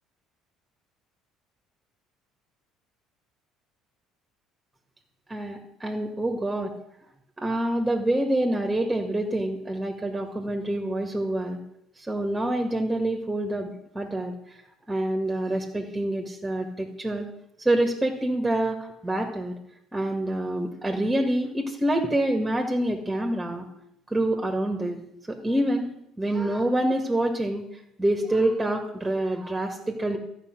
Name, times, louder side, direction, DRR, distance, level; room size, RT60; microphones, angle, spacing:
voice 1, 5.3-6.7 7.4-11.6 12.0-14.4 14.9-17.3 17.6-19.6 19.9-23.7 24.1-25.0 25.3-27.6 28.0-30.2, right 1 dB, 10° right, 2 dB, 2.0 m, -26 dB
12.5 x 5.8 x 9.2 m, 0.79 s
hypercardioid pair, 65°, 0 cm